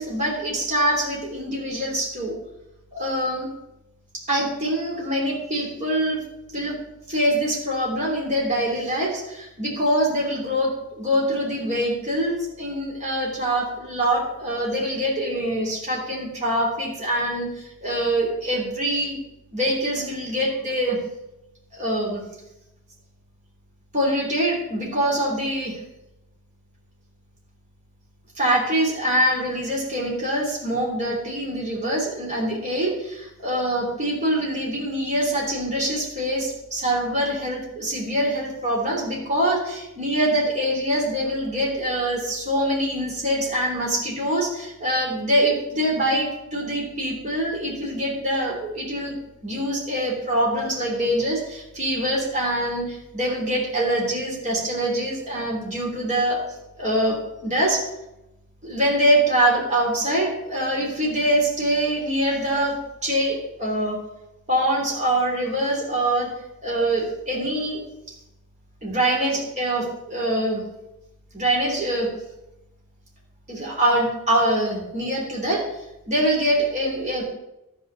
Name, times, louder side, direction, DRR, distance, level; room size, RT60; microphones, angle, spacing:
voice 1, 0.0-2.4 2.9-3.5 4.3-6.2 6.5-6.8 7.1-19.2 19.5-21.0 21.7-22.2 23.9-25.8 28.4-56.4 56.7-57.8 58.6-64.0 64.5-66.3 66.6-67.8 68.8-70.6 71.3-72.1 73.5-75.6 76.1-77.2, right 1 dB, 30° right, -2 dB, 3.1 m, -24 dB
12.0 x 5.0 x 6.8 m, 0.91 s
head